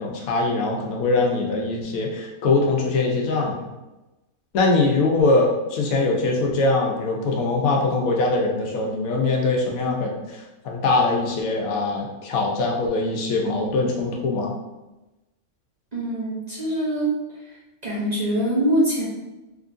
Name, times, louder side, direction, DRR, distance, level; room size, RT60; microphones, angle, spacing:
voice 1, 0.0-3.7 4.5-10.4 10.6-14.5, left 3 dB, 80° left, 0 dB, 1.1 m, -22 dB
voice 2, 15.9-17.1 17.8-19.1, right 1 dB, 35° right, -7 dB, 0.7 m, -23 dB
3.8 x 3.0 x 2.5 m, 1.0 s
omnidirectional pair, 1.5 m